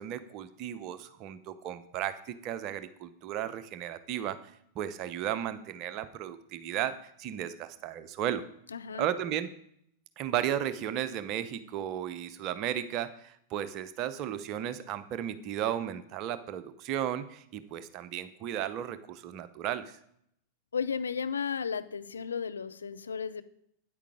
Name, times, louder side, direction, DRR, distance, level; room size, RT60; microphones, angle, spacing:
voice 1, 0.0-4.4 4.8-8.4 8.9-9.5 10.2-20.0, right 10 dB, 40° right, 12 dB, 0.7 m, -34 dB
voice 2, 8.7-9.1 20.7-23.4, left 6 dB, 70° left, 12 dB, 0.5 m, -34 dB
9.3 x 8.6 x 4.9 m, 0.71 s
figure-of-eight pair, 90°, 0 cm